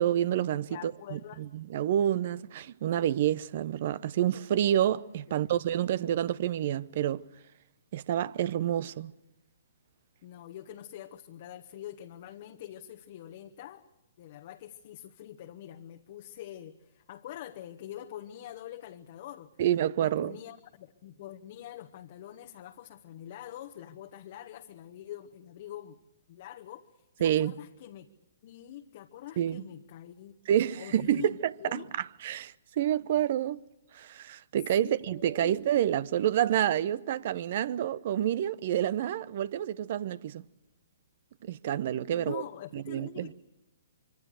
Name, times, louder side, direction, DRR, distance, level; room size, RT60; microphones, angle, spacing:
voice 1, 0.0-7.2 7.9-9.1 19.6-20.4 27.2-27.6 29.4-29.6 30.5-33.6 33.9-40.4 41.4-42.4 42.7-43.3, right 11 dB, 50° right, 0.7 m, -28 dB
voice 2, 0.7-1.5 5.3-5.4 10.2-13.8 14.2-19.5 20.0-26.0 26.3-26.9 27.2-28.1 28.4-30.4 30.8-31.9 34.8-35.7 42.1-43.3, left 12 dB, 45° left, 1.1 m, -45 dB
25.5 x 24.5 x 6.5 m
figure-of-eight pair, 125°, 0 cm